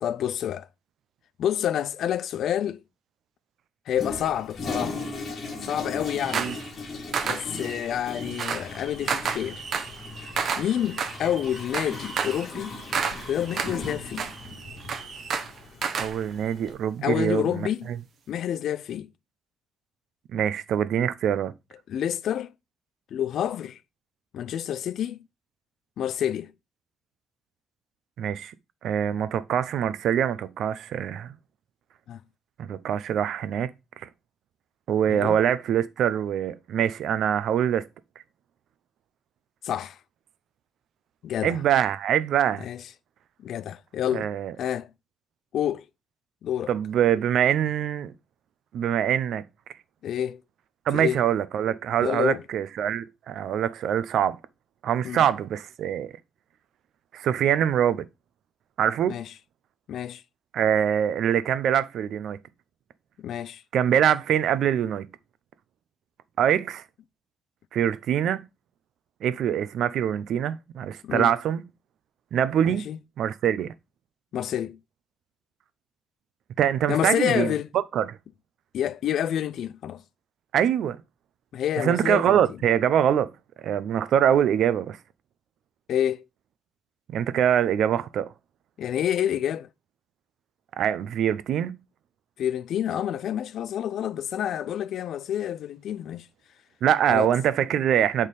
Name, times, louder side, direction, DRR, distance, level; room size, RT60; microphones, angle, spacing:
voice 1, 0.0-0.7 1.4-2.8 3.9-5.0 5.6-6.5 7.3-9.6 10.6-12.7 13.3-14.3 17.0-17.9 18.3-19.1 21.9-22.5 23.1-23.8 24.3-25.2 26.0-26.5 32.1-32.2 35.1-35.4 39.6-40.0 41.2-41.6 42.6-42.8 43.4-44.3 44.6-44.9 45.5-45.8 46.4-46.7 50.0-50.4 50.9-51.2 52.0-52.4 55.0-55.2 59.1-59.3 59.9-60.2 63.2-63.6 71.0-71.3 72.6-73.0 74.3-74.8 76.9-77.7 78.7-80.0 81.5-82.4 85.9-86.2 88.8-89.7 92.4-96.3 97.1-97.3, left 10 dB, 70° left, 0.4 m, -28 dB
Toilet flush, 3.9-16.7, left 3 dB, 40° left, 1.9 m, -38 dB
sound 1, 6.0-6.7 7.1-16.2, right 6 dB, 55° right, 0.9 m, -31 dB
voice 2, 16.0-18.0 20.3-21.5 28.2-28.5 28.8-31.3 32.6-33.7 34.0-34.1 34.9-37.9 41.4-42.7 44.1-44.5 46.7-48.1 48.7-49.4 50.9-54.4 54.8-56.1 57.1-58.0 58.8-59.2 60.5-62.4 63.7-65.1 66.4-66.8 67.7-68.4 69.2-71.6 72.3-72.9 73.2-73.7 76.6-78.2 80.5-81.0 81.8-83.3 83.6-85.0 87.1-88.3 90.8-91.8 96.8-98.3, right 9 dB, 70° right, 0.6 m, -24 dB
6.6 x 3.7 x 4.9 m
cardioid pair, 150°, 0 cm